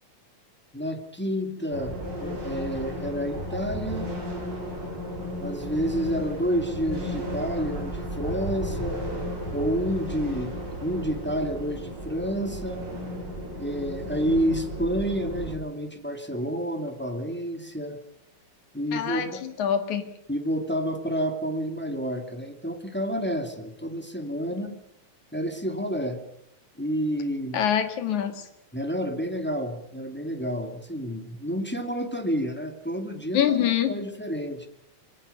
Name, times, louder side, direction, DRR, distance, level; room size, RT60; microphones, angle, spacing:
voice 1, 0.7-2.0 2.2-4.1 5.4-9.0 9.5-10.6 10.8-12.8 13.6-18.0 18.7-19.4 20.3-24.8 25.3-26.2 26.8-27.6 28.7-34.7, equal, 5° left, 5 dB, 1.9 m, -29 dB
sound 1, 1.7-15.6, equal, 35° right, 5.5 m, -34 dB
voice 2, 18.9-19.3 19.6-20.1 27.5-28.4 33.3-33.9, left 9 dB, 85° left, 9 dB, 3.4 m, -24 dB
24.0 x 18.0 x 6.9 m, 0.79 s
omnidirectional pair, 3.3 m